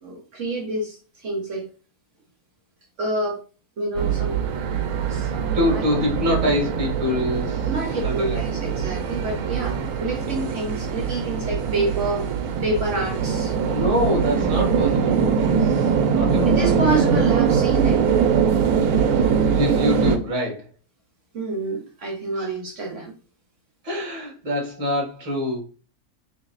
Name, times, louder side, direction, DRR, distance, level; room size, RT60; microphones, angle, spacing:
voice 1, 0.0-1.7 3.0-3.4 3.8-4.4 5.0-5.8 7.6-12.2 12.6-13.5 16.4-18.1 21.3-23.1, right 2 dB, 60° right, 0 dB, 1.1 m, -28 dB
sound 1, 3.9-20.2, right 6 dB, 85° right, 1.1 m, -22 dB
voice 2, 5.5-7.7 8.0-8.4 13.5-16.7 19.1-20.7 22.3-22.5 23.8-25.6, left 1 dB, 25° right, 0 dB, 1.1 m, -25 dB
3.0 x 2.9 x 3.9 m, 0.36 s
omnidirectional pair, 1.5 m